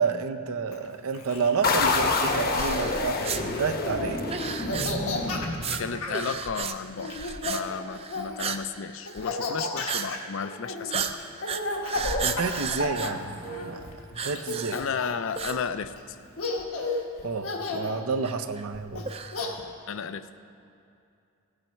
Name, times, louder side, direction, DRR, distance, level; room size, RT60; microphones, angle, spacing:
voice 1, 0.0-4.2 12.2-14.8 17.2-19.0, right 5 dB, 80° right, 8 dB, 0.6 m, -30 dB
Laughter, 0.7-3.1 3.7-4.1 4.4-6.2 7.0-8.5 9.1-13.9 14.4-15.3 16.0-16.1 16.4-17.0 17.4-18.0 19.0-19.5, left 2 dB, 80° left, 1.4 m, -33 dB
sound 1, 1.6-6.2, left 3 dB, 45° left, 0.9 m, -28 dB
sound 2, 2.6-3.4 4.2-5.1 5.5-5.8 6.1-6.7 7.0-7.6 7.9-8.6 9.0-9.2 9.8-10.1 10.4-10.5 10.9-13.7 14.1-14.9 15.3-16.1 16.4-16.5 17.2-17.3 18.2-19.5, right 6 dB, 30° right, 0.5 m, -34 dB
voice 2, 5.8-7.1 7.4-11.2 14.7-16.2 19.9-20.3, left 6 dB, 65° left, 12 dB, 0.5 m, -33 dB
16.0 x 8.8 x 4.5 m, 2.5 s
head